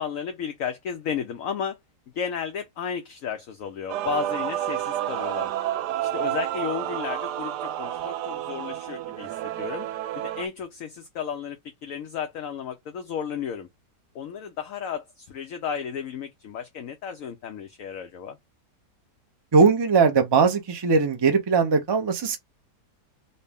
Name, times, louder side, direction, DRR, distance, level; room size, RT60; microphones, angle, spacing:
voice 1, 0.0-1.8 2.1-5.5 6.0-9.9 10.1-13.7 14.1-18.4, left 7 dB, 65° left, 0.9 m, -33 dB
Male singing / Female singing / Musical instrument, 3.9-10.5, right 12 dB, 85° right, 1.2 m, -30 dB
voice 2, 19.5-22.4, right 5 dB, 40° right, 0.3 m, -20 dB
4.0 x 2.1 x 3.5 m
omnidirectional pair, 1.7 m